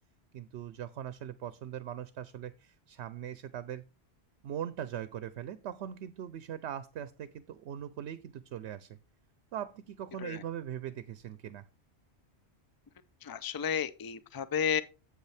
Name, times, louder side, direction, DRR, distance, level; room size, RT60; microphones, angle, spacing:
voice 1, 0.3-3.8 4.4-9.0 9.5-11.6, right 10 dB, 85° right, 0.9 m, -40 dB
voice 2, 13.2-14.8, left 7 dB, 35° left, 0.3 m, -32 dB
8.1 x 7.9 x 3.3 m
omnidirectional pair, 1.1 m